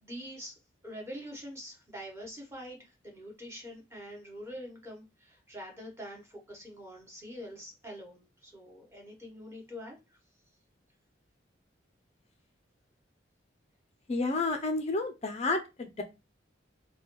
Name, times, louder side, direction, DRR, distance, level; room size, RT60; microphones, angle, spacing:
voice 1, 0.0-0.6 0.8-10.2, equal, 15° right, 1.0 m, -45 dB
voice 2, 14.1-16.0, left 3 dB, 35° left, 0.4 m, -30 dB
3.2 x 2.2 x 3.0 m
head